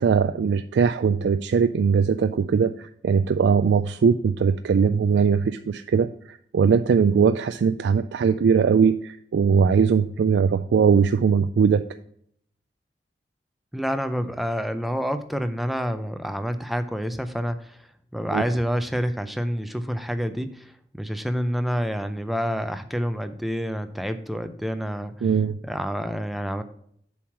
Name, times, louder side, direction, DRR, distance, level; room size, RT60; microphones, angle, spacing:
voice 1, 0.0-11.8 18.3-18.4 25.2-25.6, right 6 dB, 80° right, 10 dB, 0.3 m, -20 dB
voice 2, 13.7-17.8 18.1-20.7 21.0-25.3 25.6-26.6, equal, ahead, 9 dB, 0.5 m, -28 dB
7.1 x 4.7 x 5.9 m, 0.66 s
head